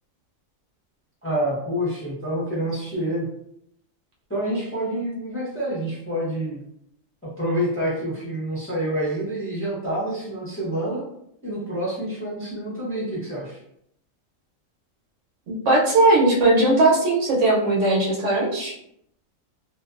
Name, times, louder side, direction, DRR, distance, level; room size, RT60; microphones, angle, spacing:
voice 1, 1.2-3.3 4.3-6.6 7.2-11.0 11.4-13.6, right 1 dB, 15° left, -7 dB, 0.6 m, -27 dB
voice 2, 15.5-18.7, right 2 dB, 70° right, -3 dB, 1.0 m, -19 dB
2.6 x 2.2 x 2.4 m, 0.74 s
omnidirectional pair, 1.4 m